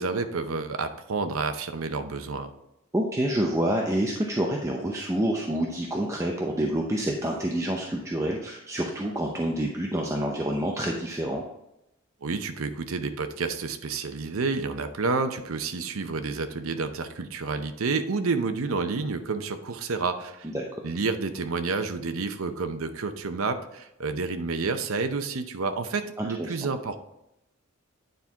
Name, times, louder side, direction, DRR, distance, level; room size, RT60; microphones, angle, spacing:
voice 1, 0.0-2.5 12.2-20.5 20.8-27.0, right 4 dB, 80° right, 9 dB, 0.7 m, -29 dB
voice 2, 2.9-11.4 20.4-20.6 26.2-26.6, right 1 dB, 15° right, 0 dB, 0.6 m, -28 dB
9.4 x 4.4 x 3.5 m, 0.86 s
head